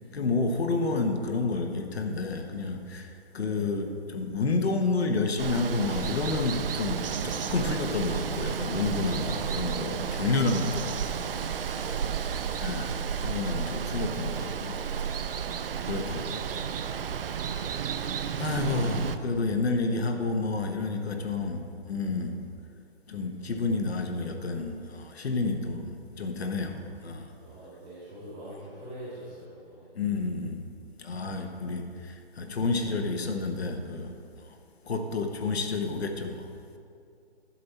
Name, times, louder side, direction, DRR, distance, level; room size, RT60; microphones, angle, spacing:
voice 1, 0.1-11.3 12.6-14.8 15.8-16.7 17.7-18.0 18.4-22.4 23.1-27.3 29.9-30.6 31.0-34.2 34.9-36.5, left 3 dB, 65° left, 5 dB, 1.1 m, -30 dB
Water, 5.4-19.2, right 7 dB, 60° right, 0.5 m, -32 dB
voice 2, 9.2-10.2 11.8-12.3 27.3-29.8, right 1 dB, 5° right, -14 dB, 0.5 m, -44 dB
10.5 x 5.8 x 4.2 m, 2.4 s
hypercardioid pair, 150°, 33 cm